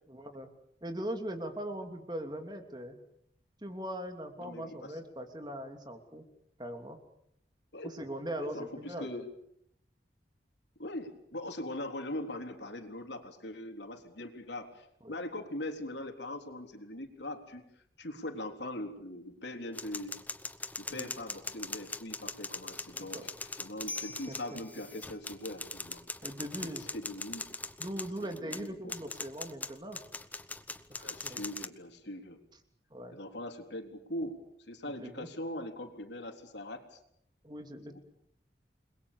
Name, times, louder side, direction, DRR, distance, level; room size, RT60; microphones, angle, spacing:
voice 1, 0.1-0.5 0.8-3.0 3.6-6.2 6.6-7.0 7.9-9.1 15.0-15.1 20.9-21.1 23.1-23.3 24.3-24.4 26.2-26.8 27.8-30.0 30.9-31.5 32.9-33.2 35.0-35.3 37.4-38.0, right 1 dB, 25° right, 6 dB, 2.9 m, -40 dB
voice 2, 4.4-5.0 7.7-8.0 8.4-9.3 10.8-17.6 18.0-20.2 20.8-26.0 26.6-27.5 28.3-28.9 31.0-32.4 33.1-37.0 37.9-38.0, left 1 dB, 75° left, 5 dB, 3.8 m, -41 dB
sound 1, 19.7-31.7, left 3 dB, 10° left, 0.9 m, -41 dB
29.0 x 22.0 x 7.1 m, 0.72 s
head